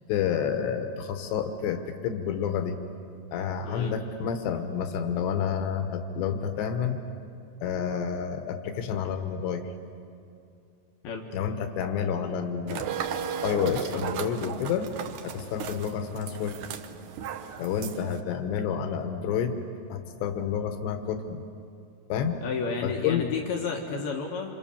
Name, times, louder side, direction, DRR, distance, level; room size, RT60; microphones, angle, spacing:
voice 1, 0.1-2.8 3.3-7.0 7.6-9.7 11.3-12.9 13.4-14.9 15.2-16.6 17.6-19.6 19.9-21.4 22.1-22.4 22.8-23.3, left 7 dB, 85° left, 7 dB, 3.4 m, -29 dB
voice 2, 3.6-3.9 11.0-11.2 22.4-24.6, left 5 dB, 70° left, 1 dB, 3.3 m, -31 dB
sound 1, 12.7-18.2, right 8 dB, 80° right, 1.7 m, -35 dB
27.5 x 27.0 x 7.2 m, 2.5 s
omnidirectional pair, 4.9 m